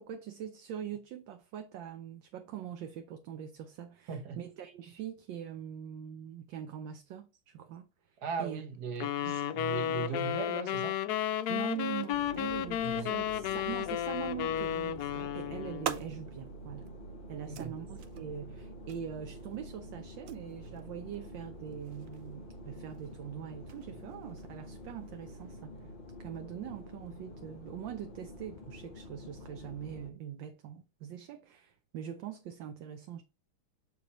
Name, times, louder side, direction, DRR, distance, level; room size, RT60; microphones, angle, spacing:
voice 1, 0.0-8.6 9.2-9.4 11.5-16.9 17.3-33.2, right 9 dB, 75° right, 1.2 m, -43 dB
voice 2, 4.1-4.4 8.2-11.0 12.8-13.1 17.4-17.7, right 6 dB, 55° right, 1.5 m, -38 dB
sound 1, 9.0-16.0, left 10 dB, 80° left, 0.8 m, -33 dB
sound 2, 12.1-30.1, equal, 40° left, 0.8 m, -47 dB
sound 3, 15.1-25.5, right 9 dB, 90° right, 0.7 m, -47 dB
6.9 x 4.7 x 3.0 m
omnidirectional pair, 2.2 m